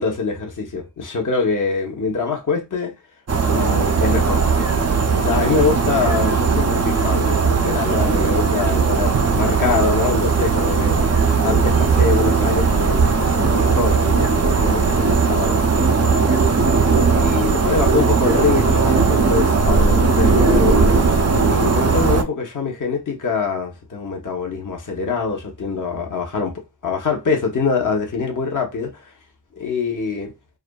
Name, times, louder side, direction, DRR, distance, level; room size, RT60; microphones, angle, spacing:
voice 1, 0.0-2.9 3.4-11.0 11.4-16.5 17.1-20.8 21.2-29.1 29.6-30.3, left 5 dB, 45° left, 0.8 m, -24 dB
sound 1, 3.3-22.2, right 4 dB, 40° right, 0.4 m, -18 dB
2.6 x 2.4 x 2.2 m
wide cardioid pair, 50°, 42 cm